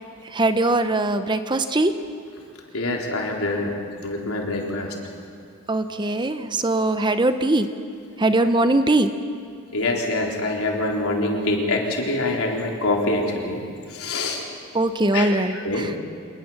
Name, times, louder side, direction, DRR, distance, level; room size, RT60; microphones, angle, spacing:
voice 1, 0.3-1.9 5.7-7.7 8.2-9.1 14.7-15.9, right 2 dB, 20° right, 9 dB, 0.8 m, -21 dB
voice 2, 2.7-3.7 4.0-4.9 9.7-13.6 13.9-14.4 15.1-15.3 15.6-15.9, left 2 dB, 80° left, 0 dB, 3.9 m, -25 dB
26.0 x 20.5 x 7.4 m, 2.4 s
head